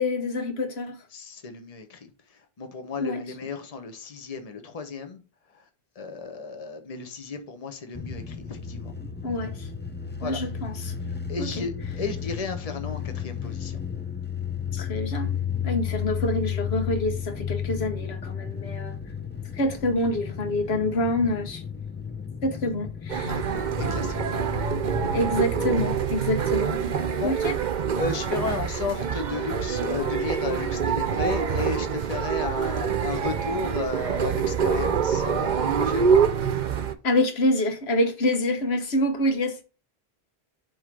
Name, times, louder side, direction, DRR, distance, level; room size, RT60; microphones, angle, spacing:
voice 1, 0.0-1.0 3.0-3.2 9.2-9.7 10.2-10.9 11.4-11.5 14.7-15.3 15.6-19.0 19.5-21.6 22.4-23.4 25.1-26.8 27.2-27.6 37.0-39.6, left 1 dB, 85° left, 1.3 m, -26 dB
voice 2, 1.1-2.1 2.6-5.2 5.5-5.6 6.0-8.9 10.2-10.4 11.3-13.8 23.3-24.4 27.2-27.3 27.9-36.2, left 4 dB, 40° left, 1.0 m, -34 dB
sound 1, 7.9-25.8, left 8 dB, 15° left, 0.4 m, -33 dB
sound 2, 23.1-36.9, right 7 dB, 55° right, 0.7 m, -26 dB
7.8 x 3.1 x 5.0 m
omnidirectional pair, 1.0 m